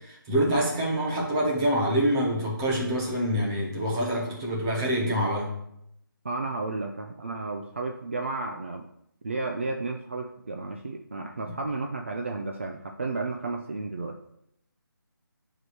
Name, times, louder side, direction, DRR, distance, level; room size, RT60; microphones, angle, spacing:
voice 1, 0.0-5.5 11.4-11.5, equal, 10° right, -2 dB, 0.9 m, -26 dB
voice 2, 6.2-8.9 9.2-14.2, right 3 dB, 35° right, 4 dB, 0.5 m, -32 dB
10.5 x 4.8 x 4.6 m, 0.76 s
figure-of-eight pair, 175°, 12 cm